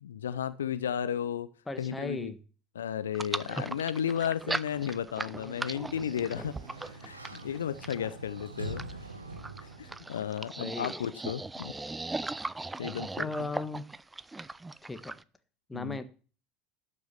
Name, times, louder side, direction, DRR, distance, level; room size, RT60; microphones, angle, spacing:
voice 1, 0.0-1.5 1.8-2.3 2.8-6.5 6.9-9.0 9.6-11.7 12.8-13.3 15.7-16.0, left 9 dB, 75° left, 14 dB, 0.5 m, -34 dB
voice 2, 1.7-2.4 8.0-8.2 10.6-11.1 13.2-13.9 14.8-15.1 15.7-16.0, left 2 dB, 10° left, 10 dB, 1.4 m, -37 dB
sound 1, 3.1-15.2, right 3 dB, 15° right, 0.5 m, -38 dB
Sliding door, 5.4-10.2, right 3 dB, 90° right, 1.2 m, -44 dB
12.0 x 6.2 x 7.2 m, 0.38 s
figure-of-eight pair, 70°, 0 cm